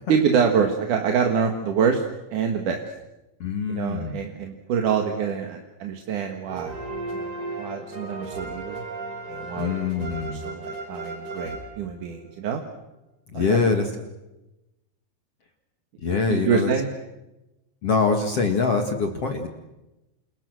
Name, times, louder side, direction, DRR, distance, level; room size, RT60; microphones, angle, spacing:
voice 1, 0.1-2.0 2.3-2.8 3.7-6.8 7.1-8.8 9.3-12.6 13.3-13.8 16.3-16.9, right 6 dB, 55° right, 3 dB, 2.8 m, -26 dB
voice 2, 3.4-4.2 9.6-10.5 13.3-13.9 16.0-16.7 17.8-19.5, left 4 dB, 45° left, 4 dB, 2.2 m, -24 dB
sound 1, 6.5-12.4, right 2 dB, 35° right, 7.4 m, -35 dB
29.0 x 28.5 x 6.3 m, 0.99 s
omnidirectional pair, 5.0 m